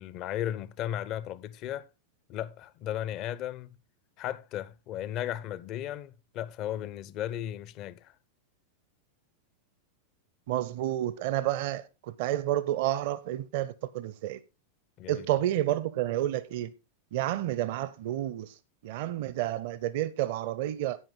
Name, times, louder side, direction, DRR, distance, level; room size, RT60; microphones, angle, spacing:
voice 1, 0.0-1.9 2.3-3.8 4.2-8.1 15.0-15.3, left 11 dB, 40° left, 0.5 m, -35 dB
voice 2, 10.5-14.4 15.1-16.7 17.1-18.5 18.8-21.0, right 13 dB, 50° right, 0.6 m, -30 dB
11.0 x 9.0 x 3.7 m
figure-of-eight pair, 90°, 0 cm